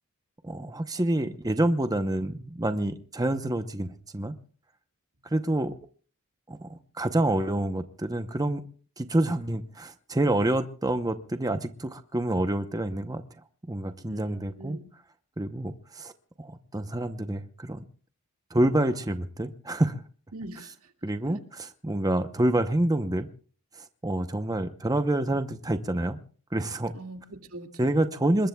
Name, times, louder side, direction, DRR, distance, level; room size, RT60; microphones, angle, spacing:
voice 1, 0.4-4.3 5.2-5.7 6.5-8.6 9.0-13.2 13.7-14.8 15.4-16.1 16.4-17.8 18.5-20.0 21.0-23.3 23.7-26.2 26.5-26.9 27.8-28.5, right 1 dB, 15° right, 8 dB, 0.8 m, -27 dB
voice 2, 14.1-14.8 20.3-20.9 21.3-21.4 26.9-28.1, right 2 dB, 75° right, 5 dB, 2.1 m, -42 dB
27.0 x 21.5 x 2.3 m, 0.43 s
head